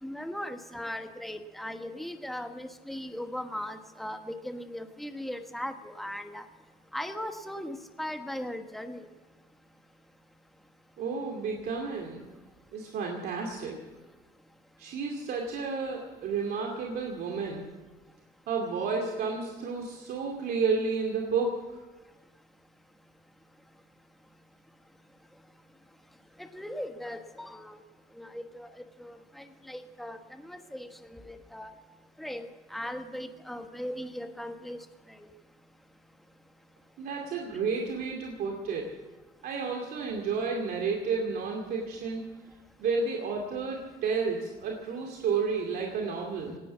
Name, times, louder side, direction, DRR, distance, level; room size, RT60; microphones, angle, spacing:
voice 1, 0.0-6.4 6.9-9.1 26.4-27.8 28.2-28.7 29.0-31.7 32.2-35.3, left 1 dB, ahead, 7 dB, 1.2 m, -38 dB
voice 2, 11.0-12.2 12.7-13.8 14.8-17.7 18.5-21.8 37.0-38.9 39.4-42.2 42.8-46.6, right 5 dB, 65° right, 0 dB, 2.5 m, -31 dB
18.5 x 9.7 x 8.2 m, 1.3 s
cardioid pair, 110°, 17 cm